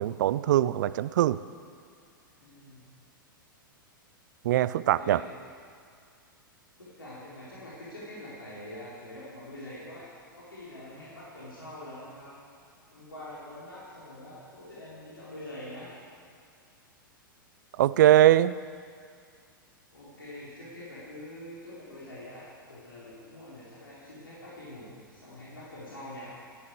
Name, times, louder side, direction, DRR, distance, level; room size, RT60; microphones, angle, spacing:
voice 1, 0.0-1.4 4.4-5.2 17.8-18.5, right 13 dB, 55° right, 17 dB, 0.5 m, -22 dB
voice 2, 2.4-2.8 4.6-5.3 6.8-10.1 10.4-12.4 12.9-15.9 19.9-26.3, left 1 dB, 85° left, -8 dB, 4.3 m, -45 dB
14.0 x 9.5 x 8.2 m, 2.2 s
figure-of-eight pair, 105°, 12 cm